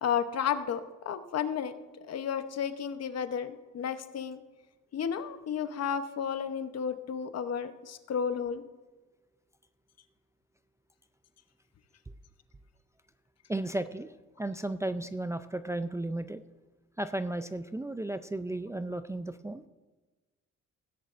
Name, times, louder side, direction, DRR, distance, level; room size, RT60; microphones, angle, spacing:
voice 1, 0.0-1.7 2.0-4.4 4.9-8.6, left 7 dB, 55° left, 10 dB, 0.9 m, -32 dB
voice 2, 13.5-14.1 14.4-16.4 17.0-19.6, right 2 dB, 10° right, 10 dB, 0.4 m, -34 dB
16.5 x 10.0 x 2.5 m, 1.2 s
cardioid pair, 90°, 30 cm